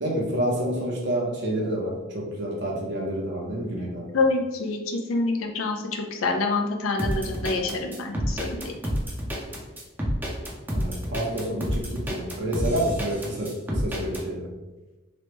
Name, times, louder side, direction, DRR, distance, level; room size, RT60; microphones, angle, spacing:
voice 1, 0.0-4.1 10.7-14.5, right 1 dB, 60° right, -1 dB, 0.7 m, -28 dB
voice 2, 4.1-8.8, left 3 dB, 90° left, 3 dB, 0.5 m, -26 dB
sound 1, 7.0-14.2, equal, 10° right, 0.4 m, -29 dB
3.0 x 2.2 x 2.9 m, 1.1 s
head